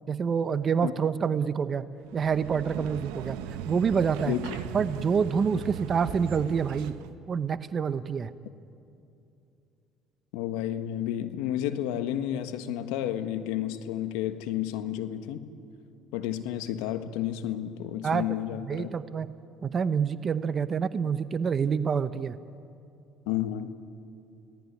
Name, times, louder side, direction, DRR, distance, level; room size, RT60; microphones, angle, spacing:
voice 1, 0.1-1.9 2.1-3.4 3.7-4.4 4.7-7.0 7.3-8.3 18.0-18.3 18.7-19.3 19.6-22.4, right 6 dB, 40° right, 13 dB, 0.9 m, -27 dB
sound 1, 2.0-7.1, right 11 dB, 85° right, 1.1 m, -38 dB
voice 2, 4.3-4.6 10.3-15.5 16.1-18.9 23.3-23.7, left 12 dB, 85° left, 9 dB, 1.5 m, -31 dB
30.0 x 18.0 x 9.6 m, 2.7 s
supercardioid pair, 85°, 0 cm